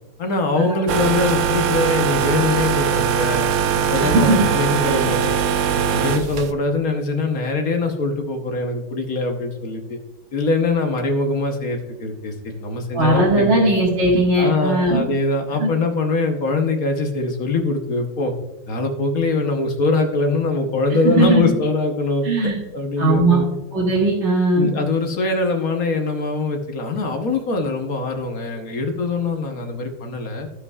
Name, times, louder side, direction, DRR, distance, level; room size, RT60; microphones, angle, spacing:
voice 1, 0.2-3.4 3.7-5.3 5.7-10.0 10.3-13.7 14.4-18.3 18.7-23.6 24.6-30.5, left 3 dB, 55° left, 4 dB, 1.4 m, -23 dB
sound 1, 0.9-6.5, right 7 dB, 85° right, 0.6 m, -21 dB
voice 2, 4.0-4.4 12.9-15.0 15.6-15.7 21.0-21.5 22.2-22.6 23.0-23.4 23.7-24.7, right 2 dB, 40° right, -5 dB, 1.8 m, -18 dB
15.5 x 5.4 x 2.4 m, 1.1 s
omnidirectional pair, 1.9 m